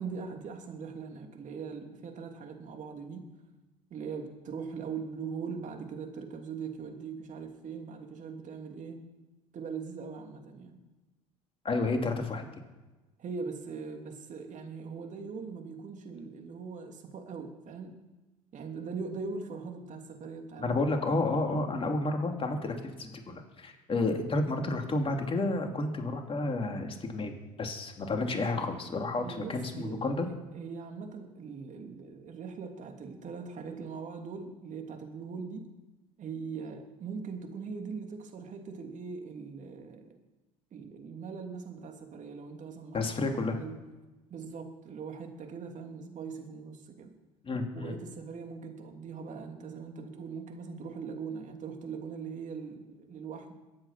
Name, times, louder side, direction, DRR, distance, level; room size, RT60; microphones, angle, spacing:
voice 1, 0.0-3.3 3.9-9.0 9.5-10.8 13.2-18.0 18.5-20.8 29.2-35.6 36.2-40.1 40.7-43.8 44.3-47.1 47.7-53.5, right 5 dB, 45° right, 3 dB, 3.0 m, -41 dB
voice 2, 11.6-12.4 20.6-30.3 42.9-43.6 47.4-47.9, left 2 dB, 30° left, 4 dB, 3.0 m, -31 dB
22.5 x 8.7 x 5.9 m, 1.2 s
hypercardioid pair, 65°, 18 cm